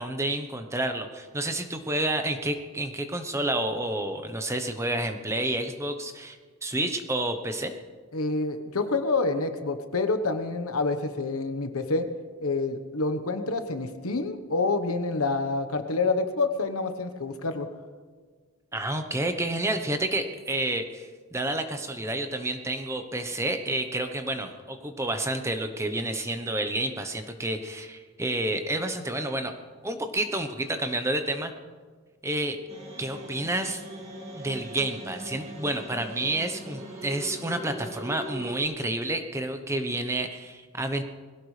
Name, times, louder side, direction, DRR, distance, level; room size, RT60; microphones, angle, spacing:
voice 1, 0.0-6.4 6.6-7.7 18.7-29.5 29.8-31.5 32.2-32.6 33.0-33.8 34.4-41.0, right 1 dB, 15° right, 7 dB, 0.9 m, -29 dB
voice 2, 8.1-12.1 12.4-17.7, left 3 dB, 80° left, 8 dB, 1.2 m, -27 dB
sound 1, 32.7-38.6, right 1 dB, 30° right, 2.5 m, -40 dB
21.0 x 16.5 x 3.3 m, 1.5 s
head